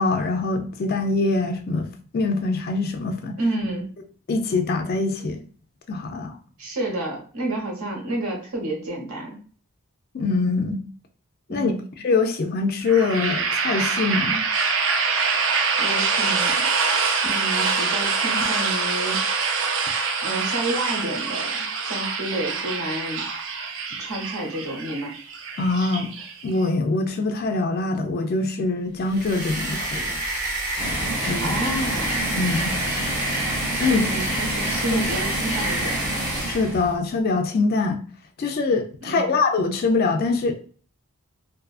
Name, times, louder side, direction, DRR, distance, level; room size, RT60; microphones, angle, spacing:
voice 1, 0.0-3.4 4.3-5.4 5.9-6.4 10.1-10.8 11.5-11.7 12.0-14.4 25.6-26.1 26.4-30.2 31.2-31.6 32.3-32.7 33.8-34.2 34.9-35.0 36.4-38.0 38.4-40.5, left 3 dB, 45° left, 0.3 m, -23 dB
voice 2, 3.4-3.9 6.6-9.4 11.5-11.8 15.8-16.7 17.2-19.2 20.2-23.3 24.0-25.2 31.4-32.2 33.7-36.0 39.0-39.3, right 1 dB, 75° right, 0.9 m, -30 dB
sound 1, 12.8-26.7, right 5 dB, 60° right, 0.4 m, -25 dB
sound 2, 29.0-36.8, right 1 dB, 40° right, 0.8 m, -28 dB
sound 3, 30.8-37.0, right 1 dB, 10° right, 0.5 m, -30 dB
2.6 x 2.4 x 2.3 m
head